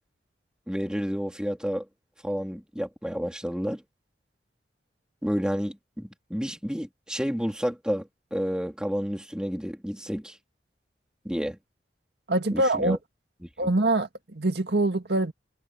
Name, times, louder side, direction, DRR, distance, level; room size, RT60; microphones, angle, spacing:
voice 1, 0.7-1.9 2.2-3.8 5.2-10.4 11.3-11.6 12.5-13.0 13.6-13.7, equal, 5° right, 3.6 m, -30 dB
voice 2, 12.3-13.0 13.6-15.3, right 2 dB, 70° right, 1.9 m, -24 dB
head